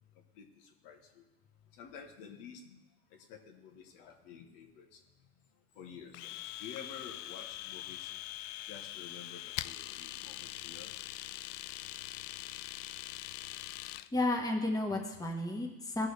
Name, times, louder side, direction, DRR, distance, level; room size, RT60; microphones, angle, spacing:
voice 1, 0.4-1.2 1.7-2.8 3.1-5.0 5.7-8.1 8.6-10.9, left 7 dB, 65° left, 3 dB, 1.5 m, -50 dB
Domestic sounds home sounds, 6.1-14.1, left 16 dB, 85° left, 0.5 m, -43 dB
voice 2, 14.1-16.1, left 2 dB, 10° left, 0 dB, 1.3 m, -32 dB
17.0 x 6.3 x 3.4 m, 1.0 s
supercardioid pair, 135°, 35 cm